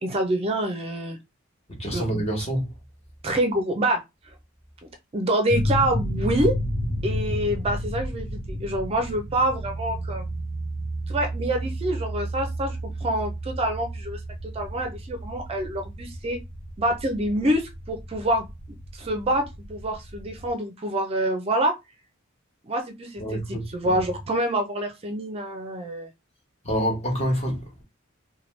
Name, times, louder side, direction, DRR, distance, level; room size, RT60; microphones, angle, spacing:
voice 1, 0.0-1.2 1.9-2.0 3.2-4.0 5.1-6.5 7.0-10.2 11.1-16.4 16.8-18.5 18.9-19.4 19.7-21.7 22.7-26.1, right 1 dB, 30° right, 0.4 m, -26 dB
voice 2, 1.7-2.7 23.2-24.0 26.6-27.8, equal, 30° left, 1.1 m, -27 dB
sound 1, 5.5-20.5, equal, 85° left, 0.8 m, -32 dB
2.9 x 2.2 x 3.1 m
head